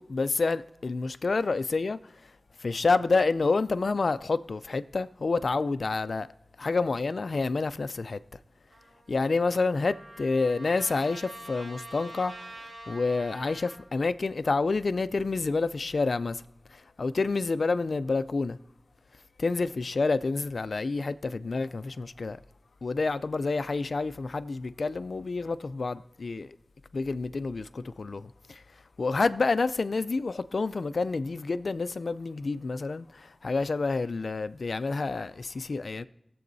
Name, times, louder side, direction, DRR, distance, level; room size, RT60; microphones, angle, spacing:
voice 1, 0.0-2.0 2.6-6.3 6.6-8.2 9.1-16.4 16.7-18.6 19.4-22.4 22.8-26.6 26.9-28.6 29.0-36.0, left 3 dB, 80° left, 0.4 m, -28 dB
Trumpet, 8.7-13.8, right 1 dB, 80° right, 2.5 m, -46 dB
22.0 x 7.7 x 2.7 m
cardioid pair, 40°, 0 cm